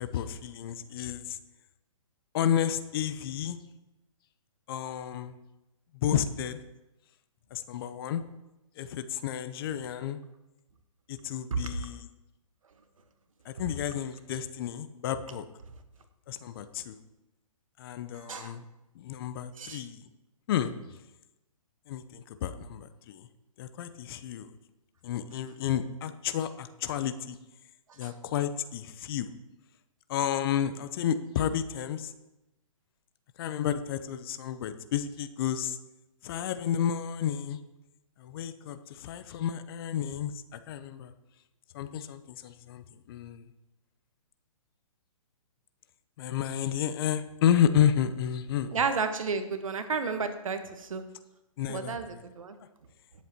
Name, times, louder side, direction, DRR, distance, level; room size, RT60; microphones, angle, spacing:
voice 1, 0.0-1.4 2.3-3.6 4.7-5.3 5.9-6.6 7.5-8.2 8.8-10.2 11.1-12.1 13.4-15.4 16.3-16.9 17.8-18.6 19.0-20.0 20.5-20.7 21.9-23.3 23.6-24.5 25.0-27.4 28.0-29.3 30.1-32.1 33.4-35.8 36.2-37.6 38.2-41.1 41.7-43.4 46.2-48.8 51.6-52.0, left 9 dB, 40° left, 11 dB, 0.8 m, -31 dB
voice 2, 48.7-51.0 51.7-52.6, right 5 dB, 70° right, 8 dB, 1.3 m, -32 dB
19.0 x 7.5 x 2.9 m, 0.96 s
figure-of-eight pair, 130°, 18 cm